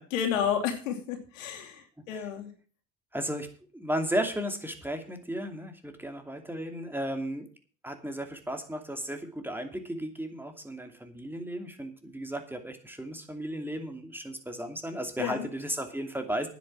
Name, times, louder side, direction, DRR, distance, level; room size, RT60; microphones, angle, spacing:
voice 1, 0.1-2.5 15.2-15.5, left 8 dB, 85° left, 5 dB, 2.8 m, -31 dB
voice 2, 3.1-3.5 3.7-7.5 7.8-16.5, equal, 5° right, 5 dB, 2.6 m, -34 dB
9.9 x 8.4 x 7.6 m, 0.40 s
hypercardioid pair, 80°, 38 cm